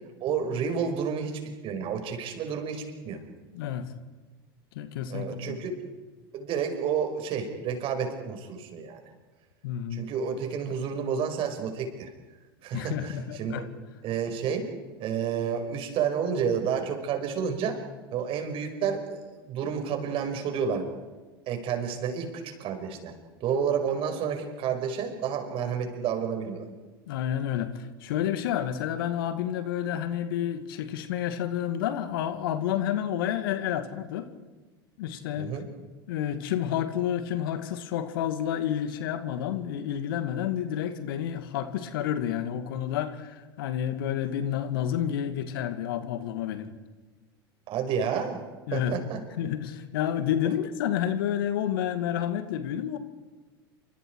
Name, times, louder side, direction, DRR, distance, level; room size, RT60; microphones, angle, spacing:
voice 1, 0.2-3.2 5.1-5.7 6.3-9.0 9.9-12.1 12.6-13.6 14.0-14.7 15.0-17.8 18.1-20.9 21.5-23.1 23.4-26.7 35.3-35.7 47.7-48.4 48.7-49.2, right 7 dB, 45° right, 5.5 m, -30 dB
voice 2, 3.5-3.9 4.8-5.6 9.6-10.1 12.7-13.6 27.1-34.3 35.0-35.5 36.1-46.7 48.7-53.0, left 10 dB, 65° left, 2.1 m, -30 dB
29.0 x 26.5 x 4.8 m
hypercardioid pair, 85°, 12 cm